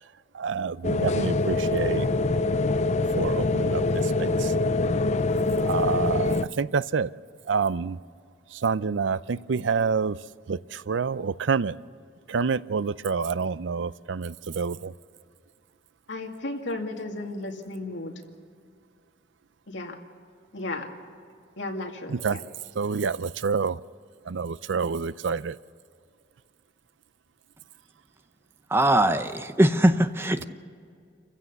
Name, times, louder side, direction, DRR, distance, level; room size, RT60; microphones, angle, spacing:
voice 1, 0.3-2.1 3.2-4.5 5.6-7.1 7.5-8.0 8.5-10.2 10.5-11.8 12.3-14.9 22.1-22.4 22.8-23.8 24.3-25.6, right 5 dB, 80° right, 18 dB, 0.5 m, -27 dB
sound 1, 0.8-6.4, left 2 dB, 40° left, 0.5 m, -24 dB
voice 2, 16.1-18.1 19.7-19.9 20.5-20.9 21.6-22.1, left 2 dB, 80° left, 2 dB, 2.3 m, -34 dB
voice 3, 28.7-30.5, right 1 dB, 15° right, 10 dB, 0.7 m, -21 dB
28.0 x 15.5 x 6.9 m, 2.3 s
head